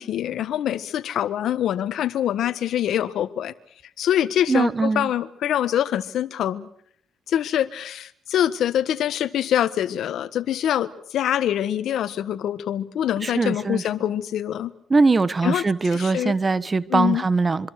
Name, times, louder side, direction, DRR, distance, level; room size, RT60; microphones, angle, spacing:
voice 1, 0.0-3.5 4.0-6.7 7.3-14.7 15.4-15.6 15.9-16.3 16.9-17.2, left 11 dB, 75° left, 1.4 m, -24 dB
voice 2, 4.5-5.1 13.2-13.8 14.9-17.7, right 3 dB, 25° right, 1.2 m, -21 dB
26.0 x 25.0 x 6.6 m
cardioid pair, 90°, 0 cm